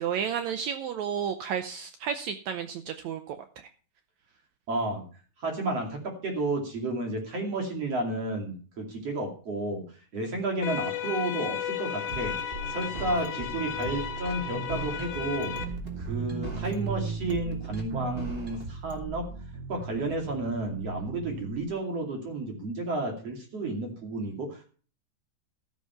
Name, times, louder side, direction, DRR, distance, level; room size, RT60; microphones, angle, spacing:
voice 1, 0.0-3.4, right 8 dB, 85° right, 8 dB, 1.6 m, -32 dB
voice 2, 4.7-5.0 5.4-9.8 10.1-12.4 12.6-15.5 16.0-19.3 19.7-24.7, right 2 dB, 45° right, 1 dB, 3.4 m, -32 dB
sound 1, 10.6-15.6, left 8 dB, 70° left, 2.4 m, -34 dB
sound 2, 12.1-19.0, right 1 dB, 20° right, 1.8 m, -40 dB
sound 3, 12.5-21.6, right 5 dB, 70° right, 3.2 m, -38 dB
14.0 x 7.3 x 5.8 m, 0.41 s
omnidirectional pair, 4.2 m